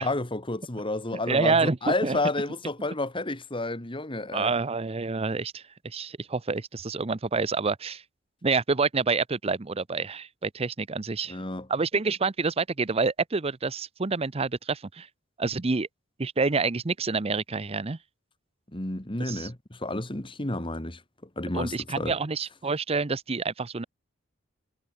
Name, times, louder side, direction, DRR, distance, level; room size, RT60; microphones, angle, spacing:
voice 1, 0.0-4.5 11.3-11.7 18.7-21.0 21.4-22.1, left 2 dB, 25° left, 2.1 m, -31 dB
voice 2, 1.3-2.2 4.3-8.0 8.4-11.4 11.7-15.1 15.4-15.9 16.2-18.0 19.2-19.5 21.5-23.8, right 4 dB, 30° right, 0.6 m, -28 dB
head